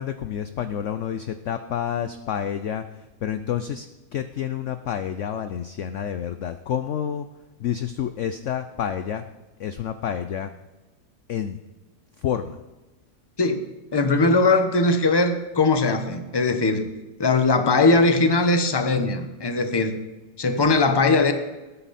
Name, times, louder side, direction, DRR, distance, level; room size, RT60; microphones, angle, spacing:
voice 1, 0.0-7.3 7.6-9.2 9.6-10.5 11.3-11.6 12.2-12.6 16.6-16.9, left 9 dB, 70° left, 10 dB, 0.7 m, -29 dB
voice 2, 13.9-16.9 17.2-20.0 20.4-21.3, left 3 dB, 20° left, 7 dB, 0.8 m, -20 dB
19.5 x 9.7 x 4.2 m, 1.1 s
omnidirectional pair, 1.9 m